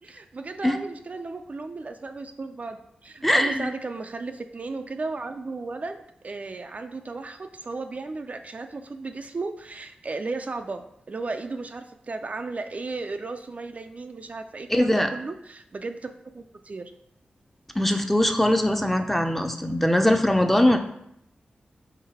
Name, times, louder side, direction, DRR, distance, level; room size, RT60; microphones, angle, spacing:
voice 1, 0.0-16.9 20.7-20.8, right 3 dB, 50° right, 6 dB, 0.4 m, -35 dB
voice 2, 3.2-3.7 14.7-15.1 17.8-20.8, left 1 dB, 5° left, 5 dB, 0.6 m, -21 dB
4.0 x 3.2 x 4.1 m, 0.76 s
cardioid pair, 40°, 3 cm